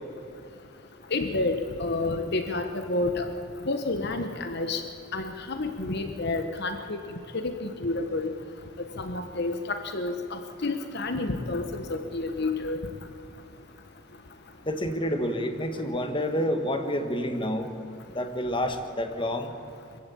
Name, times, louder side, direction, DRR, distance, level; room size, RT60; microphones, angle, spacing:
voice 1, 1.1-3.3 3.6-4.8 5.1-7.0 7.3-8.3 9.0-12.8, left 2 dB, 55° left, 7 dB, 1.2 m, -29 dB
voice 2, 14.7-17.7 18.1-19.5, equal, 25° left, 6 dB, 1.6 m, -28 dB
24.0 x 15.0 x 8.6 m, 2.8 s
head